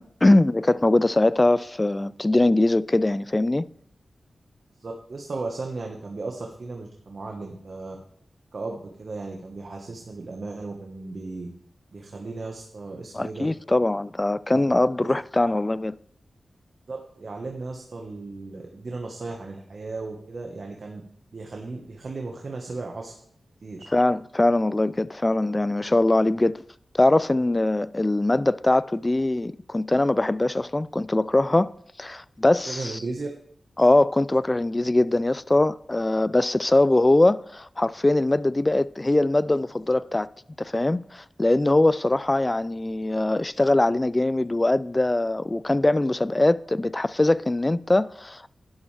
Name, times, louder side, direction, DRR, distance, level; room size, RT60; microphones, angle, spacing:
voice 1, 0.0-3.7 13.1-15.9 23.9-26.6 26.9-31.7 32.0-33.0 33.8-40.3 40.6-48.5, left 2 dB, 25° left, 0.3 m, -22 dB
voice 2, 4.8-8.0 8.5-11.5 11.9-13.5 14.5-14.6 16.9-21.0 21.3-23.1 23.6-23.8 32.7-33.3, right 3 dB, 55° right, 1.4 m, -35 dB
12.0 x 10.5 x 3.4 m
cardioid pair, 70°, 0 cm